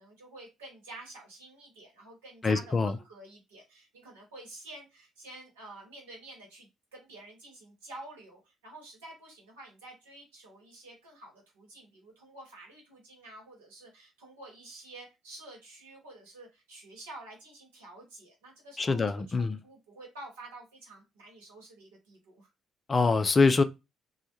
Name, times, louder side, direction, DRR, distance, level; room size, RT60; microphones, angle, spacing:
voice 1, 0.0-22.5, right 2 dB, 75° right, 0.9 m, -49 dB
voice 2, 2.4-2.9 18.8-19.6 22.9-23.6, left 4 dB, 30° left, 0.3 m, -24 dB
2.1 x 2.1 x 2.9 m
figure-of-eight pair, 45°, 0 cm